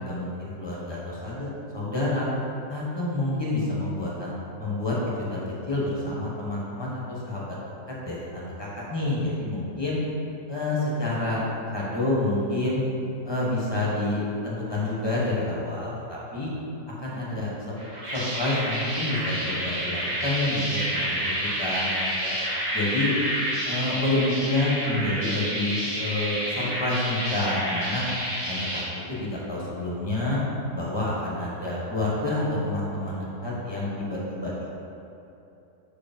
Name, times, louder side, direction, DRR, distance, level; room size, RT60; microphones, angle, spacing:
voice 1, 0.0-2.3 2.7-7.6 8.0-10.0 10.5-11.4 11.7-12.8 13.2-16.5 17.0-17.7 18.1-22.3 22.7-23.1 23.6-28.0 28.5-30.4 30.7-34.5, left 2 dB, 20° left, -6 dB, 1.2 m, -28 dB
sound 1, 17.8-28.8, equal, 30° right, 1.5 m, -29 dB
5.0 x 4.9 x 5.3 m, 2.9 s
omnidirectional pair, 1.5 m